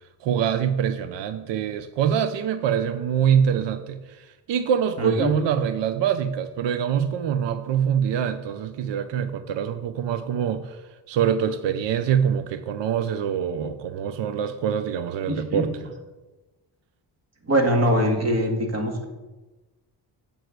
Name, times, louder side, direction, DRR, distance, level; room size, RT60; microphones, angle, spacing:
voice 1, 0.2-10.8 11.1-15.8, right 8 dB, 90° right, 10 dB, 0.7 m, -24 dB
voice 2, 5.0-5.3 15.3-15.6 17.4-19.1, equal, 35° right, 3 dB, 2.1 m, -22 dB
7.9 x 6.7 x 7.9 m, 1.2 s
cardioid pair, 105°, 42 cm